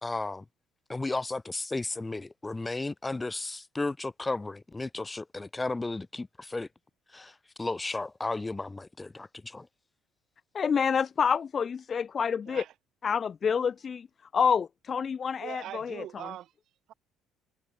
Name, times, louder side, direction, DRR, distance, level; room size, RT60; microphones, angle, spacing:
voice 1, 0.0-0.4 0.9-6.7 7.1-9.7, left 2 dB, 15° left, 1.4 m, -34 dB
voice 2, 10.5-12.6 13.0-14.1 14.3-15.8, left 6 dB, 35° left, 0.4 m, -27 dB
voice 3, 12.5-12.8 15.3-16.9, right 12 dB, 60° right, 1.9 m, -42 dB
cardioid pair, 130°, 0 cm